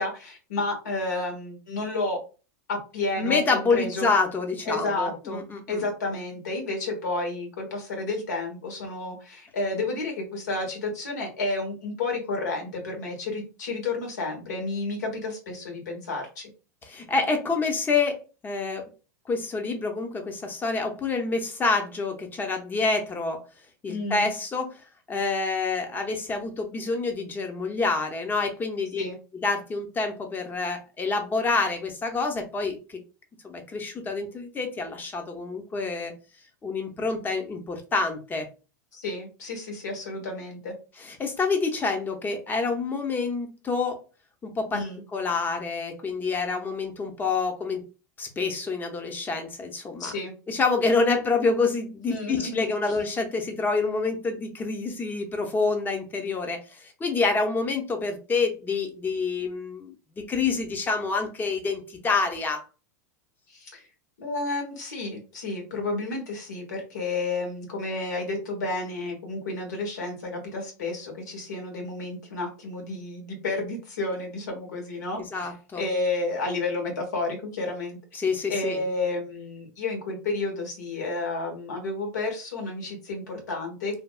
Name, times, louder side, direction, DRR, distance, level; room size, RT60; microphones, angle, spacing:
voice 1, 0.0-2.2 2.7-4.1 4.7-5.4 5.7-16.5 23.9-24.3 29.0-29.2 38.9-40.7 44.7-45.0 50.0-50.3 52.1-52.7 63.6-63.8 64.2-75.5 75.7-78.0 78.5-84.0, left 2 dB, 80° left, 2 dB, 1.3 m, -31 dB
voice 2, 3.2-5.9 16.8-18.8 19.3-23.4 23.8-24.8 25.1-29.0 29.3-33.0 33.4-36.1 36.6-38.5 41.0-44.0 44.4-44.8 45.1-47.8 48.2-50.1 50.5-62.6 75.1-75.8 78.1-78.8, left 4 dB, 20° left, 5 dB, 0.8 m, -27 dB
3.3 x 2.3 x 2.3 m, 0.33 s
hypercardioid pair, 100°, 10 cm